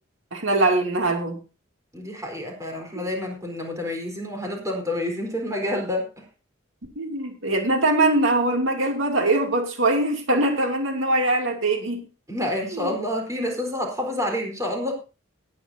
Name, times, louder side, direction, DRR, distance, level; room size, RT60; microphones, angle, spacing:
voice 1, 0.3-1.4 7.0-12.0 12.7-12.9, right 2 dB, 85° right, 3 dB, 2.7 m, -22 dB
voice 2, 1.9-6.2 12.3-14.9, left 1 dB, 15° right, 2 dB, 4.1 m, -28 dB
18.5 x 9.5 x 2.8 m, 0.31 s
head